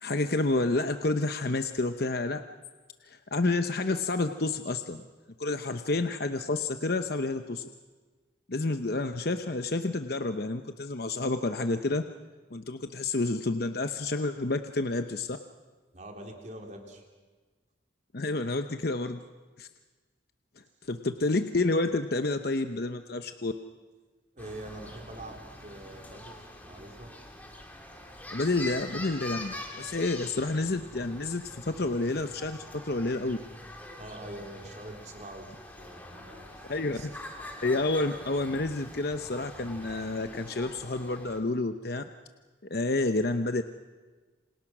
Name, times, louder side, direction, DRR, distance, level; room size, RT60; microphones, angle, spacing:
voice 1, 0.0-2.4 3.0-5.0 5.4-7.7 8.5-12.0 12.5-15.4 18.1-19.2 19.6-19.7 20.8-23.5 28.3-33.4 36.7-37.0 37.6-42.0 42.7-43.6, left 2 dB, 50° left, 8 dB, 0.9 m, -29 dB
voice 2, 15.9-17.0 24.3-27.1 34.0-37.1, right 1 dB, 40° right, 2 dB, 3.7 m, -45 dB
sound 1, 24.4-41.4, left 1 dB, 10° left, 2.9 m, -44 dB
28.0 x 26.5 x 6.1 m, 1.3 s
head